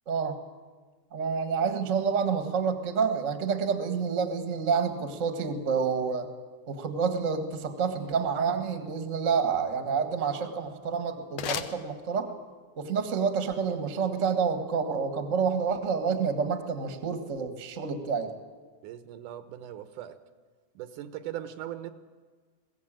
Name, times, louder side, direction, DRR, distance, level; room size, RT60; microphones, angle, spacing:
voice 1, 0.1-0.4 1.1-6.3 6.7-12.3 12.8-18.4, right 6 dB, 35° right, 7 dB, 1.4 m, -28 dB
sound 1, 10.5-12.6, left 9 dB, 65° left, 1.8 m, -38 dB
voice 2, 18.8-20.2 20.8-21.9, right 12 dB, 75° right, 10 dB, 2.5 m, -39 dB
21.5 x 16.0 x 9.0 m, 1.4 s
omnidirectional pair, 3.7 m